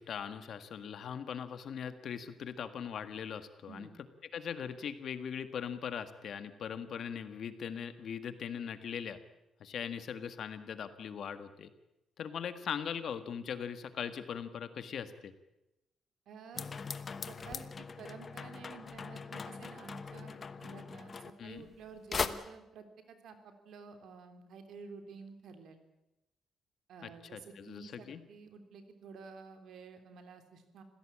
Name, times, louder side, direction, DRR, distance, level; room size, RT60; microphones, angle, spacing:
voice 1, 0.0-3.9 4.3-9.2 9.6-11.7 12.2-15.3 21.4-21.7 27.0-28.2, left 7 dB, 55° left, 10 dB, 1.7 m, -40 dB
voice 2, 16.3-16.7 17.2-25.8 26.9-30.8, right 5 dB, 70° right, 7 dB, 3.4 m, -51 dB
sound 1, 16.5-21.8 22.1-22.3, left 5 dB, 30° left, 1.1 m, -40 dB
26.5 x 16.5 x 8.7 m, 0.94 s
wide cardioid pair, 175°, 0 cm